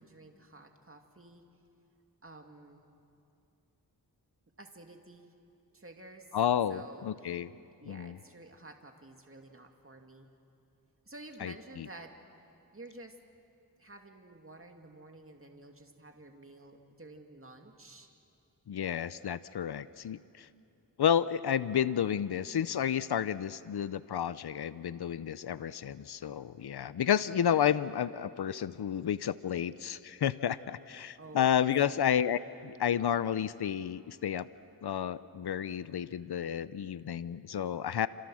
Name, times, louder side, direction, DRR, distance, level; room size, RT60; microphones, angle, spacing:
voice 1, 0.0-1.4 2.2-2.9 4.6-5.3 5.7-6.4 6.7-7.4 7.8-10.3 11.1-12.1 12.7-13.2 13.8-18.1 30.9-31.7, right 2 dB, 35° right, 3 dB, 2.4 m, -51 dB
voice 2, 6.3-7.5 7.9-8.2 11.4-11.9 18.7-20.5 21.0-34.5 34.8-38.1, left 9 dB, 85° left, 16 dB, 0.6 m, -31 dB
28.5 x 27.0 x 6.4 m, 2.6 s
cardioid pair, 40°, 38 cm